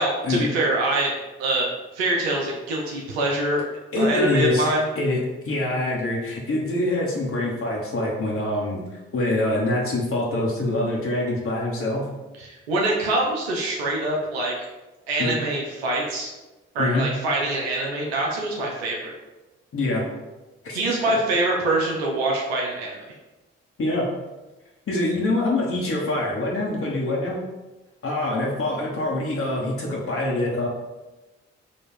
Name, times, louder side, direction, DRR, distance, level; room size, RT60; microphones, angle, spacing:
voice 1, 0.0-3.7 4.0-4.9 12.4-14.5 15.1-16.3 16.7-19.1 20.7-23.0, right 2 dB, 85° right, -2 dB, 0.7 m, -24 dB
voice 2, 3.9-4.7 4.9-5.2 5.4-12.1 15.2-15.3 16.8-17.1 19.7-20.0 20.6-20.8 23.8-24.1 24.9-27.4 28.0-30.7, left 2 dB, 45° left, -3 dB, 1.3 m, -24 dB
4.2 x 2.8 x 4.5 m, 1.1 s
hypercardioid pair, 45°, 31 cm